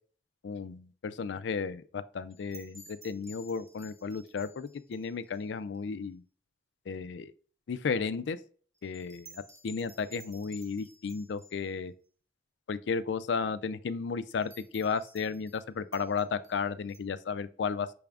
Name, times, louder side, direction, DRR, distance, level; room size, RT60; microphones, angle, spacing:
voice 1, 0.4-6.2 6.9-7.3 7.7-8.4 8.8-11.9 12.7-17.9, left 5 dB, 80° left, 0.4 m, -34 dB
sound 1, 2.3-5.4 5.7-5.8 8.7-11.7 14.3-15.6 15.9-17.0, right 1 dB, 20° right, 0.8 m, -54 dB
6.0 x 3.4 x 2.4 m
head